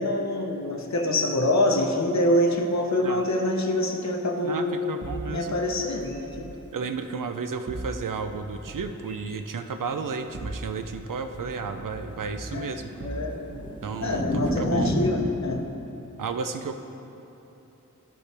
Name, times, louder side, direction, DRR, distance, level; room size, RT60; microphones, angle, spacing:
voice 1, 0.0-4.8 5.3-6.5 12.5-12.7 13.0-13.4 14.0-15.7, left 1 dB, 55° left, 2 dB, 0.7 m, -25 dB
sound 1, 0.9-1.1 2.6-2.7 3.2-3.3 6.0-6.2 6.8-7.4 7.8-7.9 8.4-8.7 9.1-9.2 9.5-9.6 9.8-15.1, equal, 15° left, 1.2 m, -32 dB
voice 2, 4.4-5.6 6.7-12.9 13.8-14.9 16.2-16.8, right 5 dB, 75° right, 7 dB, 0.5 m, -33 dB
sound 2, 5.0-6.5 7.7-9.0 10.2-11.0 11.3-13.7 14.0-14.7, right 2 dB, 40° right, 0.7 m, -39 dB
13.0 x 5.4 x 3.4 m, 2.9 s
wide cardioid pair, 45°, 32 cm